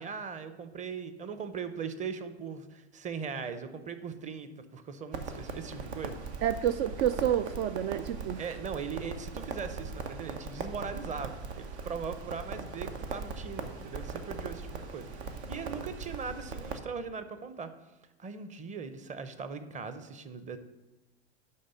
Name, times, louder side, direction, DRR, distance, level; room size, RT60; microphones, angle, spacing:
voice 1, 0.0-6.2 8.4-17.7 18.2-20.6, right 6 dB, 20° right, 0.8 m, -39 dB
Crackle, 5.1-16.8, right 4 dB, 75° right, 1.1 m, -40 dB
voice 2, 6.4-8.4, right 10 dB, 60° right, 0.4 m, -29 dB
10.5 x 3.7 x 6.8 m
hypercardioid pair, 110°, 33 cm